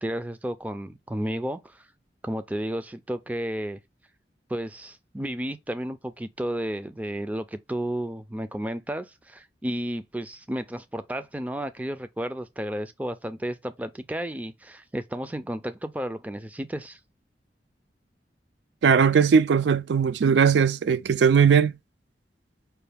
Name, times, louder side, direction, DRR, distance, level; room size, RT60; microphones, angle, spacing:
voice 1, 0.0-1.9 2.2-3.8 4.5-17.0, right 1 dB, 10° right, 0.3 m, -32 dB
voice 2, 18.8-21.7, right 6 dB, 80° right, 0.4 m, -19 dB
5.6 x 2.3 x 3.4 m
head